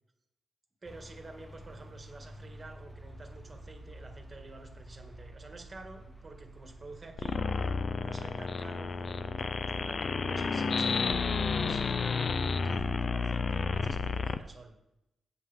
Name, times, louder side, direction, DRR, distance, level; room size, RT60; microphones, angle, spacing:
sound 1, 0.8-14.6, left 1 dB, 10° left, 1.2 m, -53 dB
voice 1, 0.8-7.7 8.0-14.7, right 2 dB, 35° right, 4 dB, 1.9 m, -49 dB
sound 2, 1.6-14.6, right 4 dB, 55° right, 1.8 m, -53 dB
sound 3, 7.2-14.4, left 4 dB, 50° left, 0.5 m, -31 dB
16.0 x 5.5 x 3.6 m, 0.88 s
cardioid pair, 70°, 0 cm